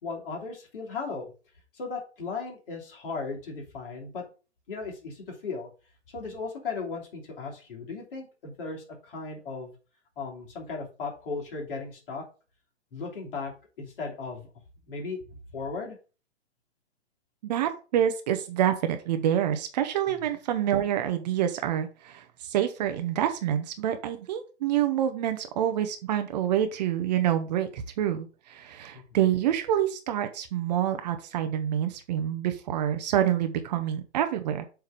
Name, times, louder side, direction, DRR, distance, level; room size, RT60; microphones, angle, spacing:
voice 1, 0.0-1.3 1.7-4.2 4.7-5.7 6.1-9.7 10.2-12.2 12.9-13.5 13.8-14.5 14.9-15.2 15.5-16.0 20.1-20.3 28.9-29.0, left 4 dB, 50° left, -1 dB, 3.0 m, -36 dB
voice 2, 17.4-34.6, right 10 dB, 35° right, 8 dB, 0.9 m, -27 dB
7.6 x 3.6 x 5.0 m, 0.34 s
figure-of-eight pair, 125°, 35 cm